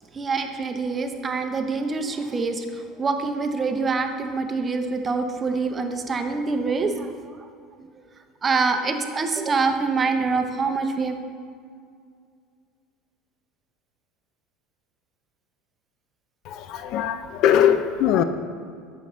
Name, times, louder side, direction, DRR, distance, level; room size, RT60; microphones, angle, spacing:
voice 1, 0.1-7.1 8.4-11.1, right 4 dB, 25° right, 6 dB, 0.7 m, -25 dB
voice 2, 16.5-18.2, left 9 dB, 60° left, 10 dB, 0.4 m, -21 dB
9.2 x 6.8 x 3.1 m, 2.2 s
supercardioid pair, 105°, 0 cm